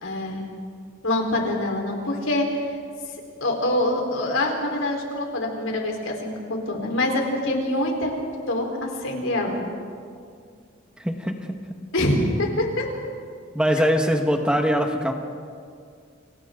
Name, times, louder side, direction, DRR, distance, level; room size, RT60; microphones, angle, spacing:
voice 1, 0.0-0.4 1.0-2.8 3.1-9.6 11.9-12.9, left 1 dB, 80° left, 1 dB, 4.4 m, -25 dB
voice 2, 11.0-11.6 13.5-15.1, equal, 5° right, 3 dB, 1.7 m, -22 dB
30.0 x 28.5 x 4.0 m, 2.2 s
head